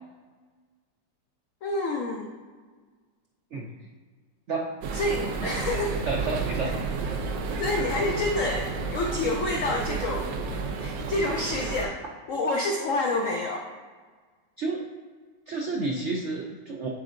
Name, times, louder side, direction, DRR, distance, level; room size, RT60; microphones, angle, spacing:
voice 1, 1.6-2.4 4.9-6.0 7.6-12.0 12.3-13.7, left 2 dB, 80° left, 1 dB, 0.7 m, -28 dB
voice 2, 4.5-4.9 5.2-5.6 6.1-6.7 14.6-14.8 15.5-16.9, right 3 dB, 85° right, -1 dB, 0.6 m, -31 dB
sound 1, 4.8-11.9, right 4 dB, 70° right, 1.2 m, -31 dB
9.7 x 4.5 x 2.5 m, 1.5 s
omnidirectional pair, 2.0 m